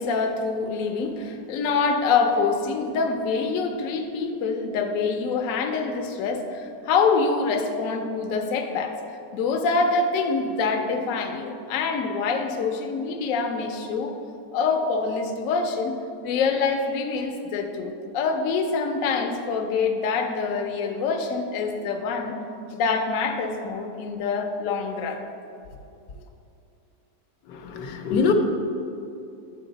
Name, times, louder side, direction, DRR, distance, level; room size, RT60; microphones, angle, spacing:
voice 1, 0.0-9.0 9.3-14.2 14.5-15.9 16.2-22.3 22.7-25.2, left 4 dB, 65° left, 4 dB, 0.9 m, -25 dB
voice 2, 27.5-28.3, left 5 dB, 90° left, 4 dB, 1.3 m, -24 dB
9.9 x 4.2 x 3.9 m, 2.6 s
omnidirectional pair, 1.8 m